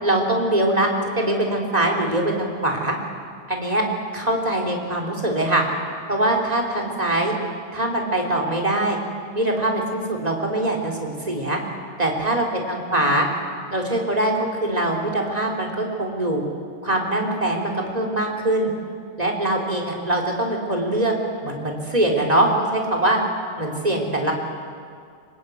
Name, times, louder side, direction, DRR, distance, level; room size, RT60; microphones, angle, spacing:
voice 1, 0.0-2.9 3.5-3.8 4.1-5.6 6.1-7.3 7.7-9.0 9.3-11.6 12.0-13.3 13.7-14.3 14.6-16.4 16.8-18.7 19.2-21.1 21.4-23.2 23.6-24.3, right 1 dB, 10° right, 0 dB, 3.2 m, -22 dB
25.5 x 21.0 x 9.6 m, 2.2 s
omnidirectional pair, 4.3 m